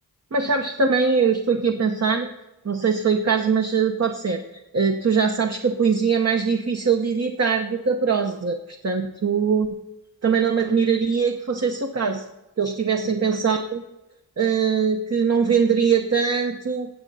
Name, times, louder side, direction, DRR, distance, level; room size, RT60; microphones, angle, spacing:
voice 1, 0.3-2.3 2.6-4.4 4.7-9.7 10.2-12.2 12.6-13.8 14.4-16.9, right 5 dB, 40° right, 4 dB, 0.8 m, -22 dB
16.0 x 8.1 x 4.0 m, 1.0 s
wide cardioid pair, 50°, 37 cm